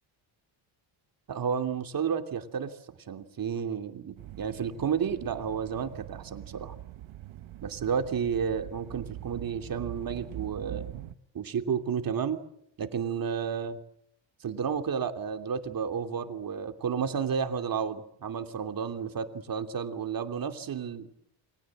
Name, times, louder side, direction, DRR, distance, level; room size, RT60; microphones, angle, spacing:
voice 1, 1.3-2.7 3.1-6.7 7.6-10.9 11.3-12.4 12.8-13.8 14.4-21.1, right 7 dB, 45° right, 7 dB, 2.9 m, -31 dB
sound 1, 4.2-11.1, right 13 dB, 85° right, 1.8 m, -43 dB
29.0 x 23.5 x 7.7 m, 0.72 s
cardioid pair, 135°, 46 cm